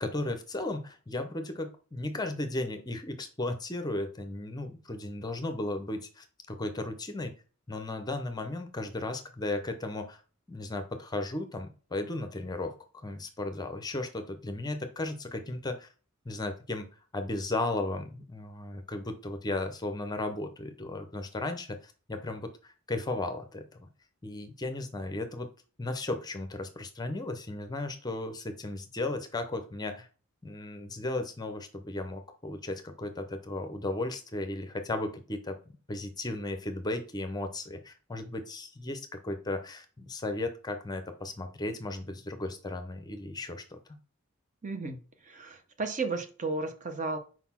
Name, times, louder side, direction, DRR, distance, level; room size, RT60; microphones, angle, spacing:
voice 1, 0.0-7.3 7.7-10.2 10.5-15.9 16.3-16.9 17.1-23.9 24.2-25.5 25.8-30.1 30.4-35.6 35.9-43.8, left 2 dB, 20° left, 7 dB, 0.7 m, -35 dB
voice 2, 44.6-47.2, right 3 dB, 35° right, 8 dB, 0.8 m, -34 dB
4.7 x 4.1 x 5.7 m, 0.37 s
head